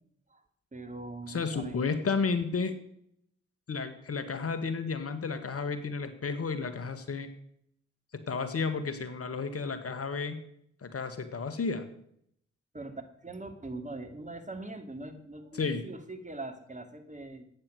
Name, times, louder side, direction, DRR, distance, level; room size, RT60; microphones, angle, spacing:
voice 1, 0.7-1.8 12.7-17.4, right 2 dB, 25° right, 6 dB, 2.6 m, -42 dB
voice 2, 1.3-2.7 3.7-7.3 8.1-10.4 10.8-11.9 15.5-15.9, left 4 dB, 45° left, 10 dB, 1.9 m, -32 dB
14.0 x 9.1 x 6.4 m, 0.70 s
hypercardioid pair, 40°, 31 cm